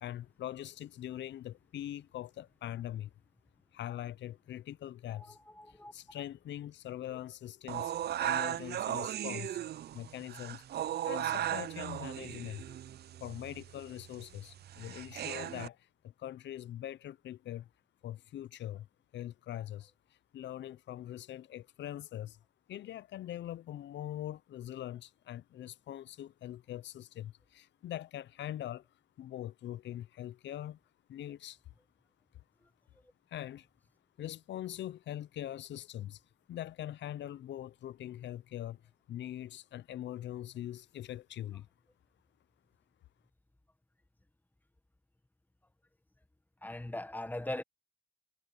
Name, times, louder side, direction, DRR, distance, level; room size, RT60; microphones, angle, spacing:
voice 1, 0.0-3.1 3.7-5.4 5.7-9.6 9.9-12.6 13.2-17.7 18.0-18.9 19.1-19.9 20.3-22.4 22.7-28.8 29.2-30.8 31.1-31.6 33.3-33.7 34.2-36.2 36.5-38.8 39.1-41.7, left 12 dB, 65° left, 0.6 m, -42 dB
voice 2, 5.1-6.2 7.1-7.2 12.7-12.8 46.6-47.6, left 1 dB, 10° left, 1.6 m, -41 dB
sound 1, 7.7-15.7, right 11 dB, 55° right, 0.5 m, -37 dB
cardioid pair, 90°, 20 cm